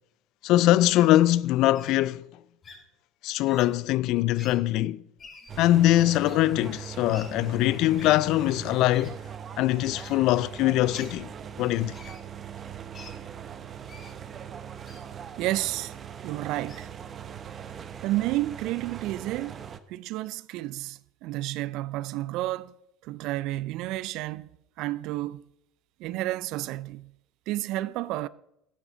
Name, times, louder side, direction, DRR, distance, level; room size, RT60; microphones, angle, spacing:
voice 1, 0.4-2.3 3.2-5.0 5.6-9.2 9.6-11.3 11.6-11.9, left 15 dB, 65° left, 0.4 m, -22 dB
Wild animals, 0.9-1.1 1.7-1.9 2.6-2.8 3.4-3.7 4.3-4.5 5.2-5.5 6.2-6.3 7.1-7.2 8.0-8.1 8.9-9.1 9.9-10.1 10.9-11.2 11.9-12.2 12.9-13.1 13.9-14.1 14.8-15.0 15.7-15.9 16.7-16.8, left 3 dB, 35° left, 4.9 m, -47 dB
sound 1, 5.5-19.8, right 8 dB, 40° right, 0.9 m, -41 dB
voice 2, 15.4-15.9 16.2-16.9 18.0-19.6 19.9-22.8 23.0-24.5 24.8-25.4 26.0-27.1 27.5-28.3, right 16 dB, 65° right, 0.4 m, -31 dB
14.0 x 10.0 x 4.0 m
hypercardioid pair, 75°, 0 cm